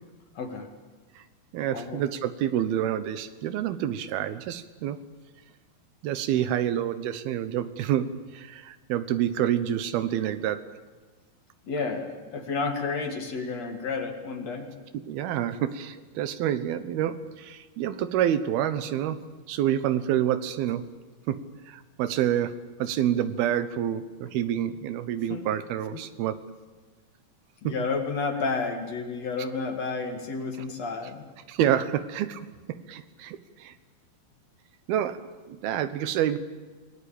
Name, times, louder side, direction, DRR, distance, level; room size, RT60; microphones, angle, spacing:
voice 1, 0.3-0.7 1.7-2.0 6.3-6.5 11.7-14.7 25.3-25.5 25.9-26.0 27.6-31.3, left 4 dB, 50° left, 5 dB, 2.9 m, -31 dB
voice 2, 1.5-5.0 6.0-10.7 15.1-20.9 21.3-26.4 27.6-27.7 31.5-32.5 32.9-33.7 34.9-36.4, right 10 dB, 80° right, 12 dB, 3.0 m, -28 dB
28.0 x 20.5 x 8.7 m, 1.4 s
omnidirectional pair, 4.4 m